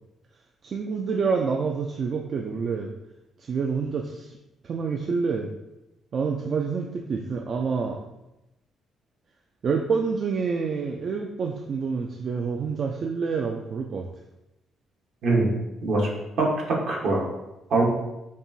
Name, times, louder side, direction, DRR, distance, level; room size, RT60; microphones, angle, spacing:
voice 1, 0.6-2.9 3.4-4.3 4.6-5.5 6.1-8.0 9.6-14.1, right 5 dB, 55° right, 2 dB, 0.3 m, -27 dB
voice 2, 16.4-17.3 17.7-17.8, right 2 dB, 75° right, -2 dB, 1.1 m, -23 dB
5.3 x 2.4 x 2.6 m, 0.94 s
cardioid pair, 90°, 0 cm